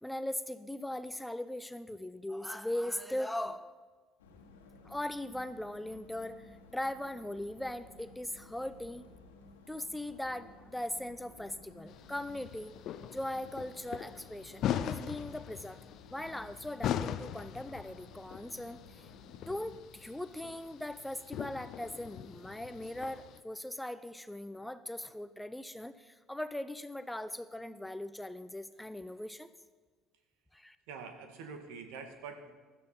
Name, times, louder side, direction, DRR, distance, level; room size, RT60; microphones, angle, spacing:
voice 1, 0.0-3.8 4.8-9.1 9.7-12.7 13.1-15.8 16.1-19.1 19.5-29.5 30.5-30.8, left 1 dB, 5° left, 12 dB, 0.8 m, -39 dB
sound 1, 4.2-19.8, left 3 dB, 85° left, 1.8 m, -56 dB
sound 2, 11.9-23.4, left 10 dB, 60° left, 0.7 m, -41 dB
voice 2, 30.9-32.5, right 5 dB, 75° right, 6 dB, 2.0 m, -45 dB
16.5 x 12.5 x 5.7 m, 1.4 s
hypercardioid pair, 60°, 0 cm